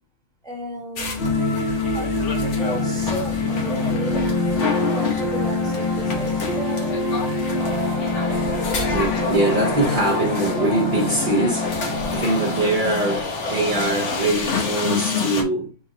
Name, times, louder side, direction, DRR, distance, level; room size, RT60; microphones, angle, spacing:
voice 1, 0.4-1.3 1.9-2.1 2.4-4.3 4.8-7.0, right 1 dB, 5° left, 1.1 m, -33 dB
sound 1, 1.0-15.4, left 4 dB, 80° left, 1.2 m, -29 dB
sound 2, 1.2-13.2, left 3 dB, 60° left, 1.2 m, -25 dB
sound 3, 7.6-14.3, equal, 30° left, 0.6 m, -32 dB
voice 2, 8.9-11.6 12.1-13.2 13.5-15.7, right 1 dB, 50° right, 0.9 m, -22 dB
4.0 x 3.1 x 4.0 m
omnidirectional pair, 1.2 m